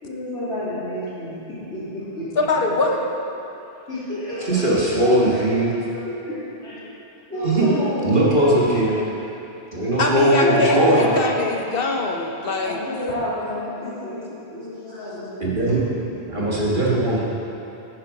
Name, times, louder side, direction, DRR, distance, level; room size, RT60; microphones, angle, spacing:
voice 1, 0.0-2.3 3.3-3.4 3.9-4.8 5.1-6.9 7.3-9.1 9.8-11.6 12.4-15.4 16.4-16.5, left 1 dB, 90° left, -12 dB, 3.5 m, -29 dB
voice 2, 2.3-3.1 10.0-12.8, left 3 dB, 60° left, 2 dB, 1.1 m, -23 dB
voice 3, 4.5-5.8 7.4-7.7 8.0-9.0 9.7-11.2 15.4-15.8 16.3-17.2, right 1 dB, 50° right, -6 dB, 1.6 m, -19 dB
10.0 x 10.0 x 4.9 m, 2.9 s
omnidirectional pair, 1.1 m